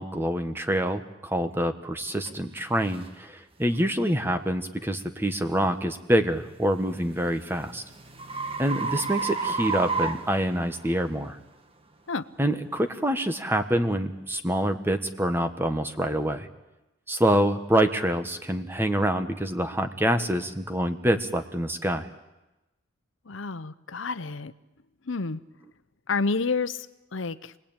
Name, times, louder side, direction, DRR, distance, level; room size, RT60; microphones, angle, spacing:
voice 1, 0.0-7.8 8.6-11.4 12.4-16.5 17.1-22.1, right 1 dB, 10° right, 8 dB, 1.4 m, -26 dB
sound 1, 2.3-2.4 2.9-3.1 3.7-3.9 6.6-11.1, right 4 dB, 30° right, 1.5 m, -31 dB
voice 2, 23.3-24.5 25.1-25.4 26.1-26.9 27.1-27.5, left 4 dB, 80° left, 13 dB, 0.8 m, -29 dB
28.5 x 20.0 x 9.0 m, 1.0 s
head